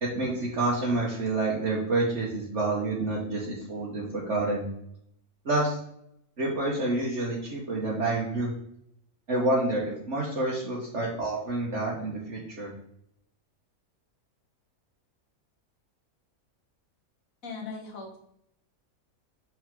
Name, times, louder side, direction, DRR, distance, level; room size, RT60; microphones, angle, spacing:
voice 1, 0.0-4.7 5.4-5.8 6.4-8.5 9.3-12.7, right 2 dB, 55° right, -5 dB, 1.6 m, -28 dB
voice 2, 17.4-18.2, left 4 dB, 65° left, 1 dB, 1.8 m, -38 dB
6.3 x 6.0 x 3.7 m, 0.72 s
omnidirectional pair, 1.5 m